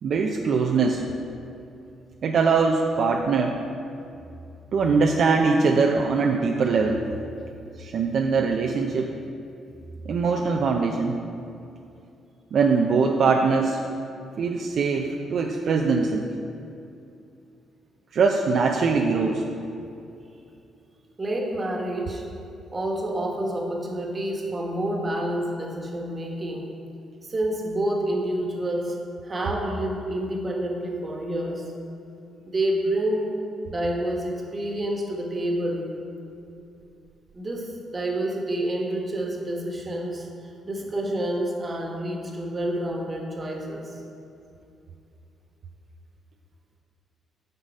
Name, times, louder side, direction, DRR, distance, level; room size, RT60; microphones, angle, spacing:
voice 1, 0.0-1.1 2.2-3.6 4.7-7.0 7.8-9.1 10.1-11.2 12.5-13.8 14.4-16.3 18.1-19.4, right 4 dB, 60° right, 2 dB, 0.5 m, -22 dB
voice 2, 21.2-22.2 22.7-26.7 27.2-29.0 29.2-31.7 32.4-33.3 33.6-35.9 37.3-40.3 40.6-44.0, right 1 dB, 30° right, 0 dB, 1.3 m, -28 dB
9.0 x 4.0 x 5.3 m, 2.6 s
cardioid pair, 90°, 0 cm